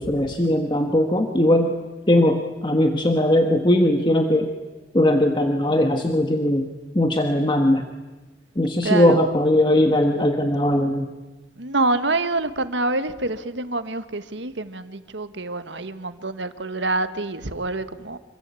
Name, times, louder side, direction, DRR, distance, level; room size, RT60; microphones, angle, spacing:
voice 1, 0.0-1.7 2.1-4.5 4.9-6.7 6.9-7.8 8.6-11.1, left 1 dB, 25° left, 4 dB, 1.5 m, -19 dB
voice 2, 8.8-9.2 11.6-18.2, right 2 dB, 75° right, 11 dB, 1.5 m, -26 dB
26.5 x 25.5 x 8.4 m, 1.2 s
head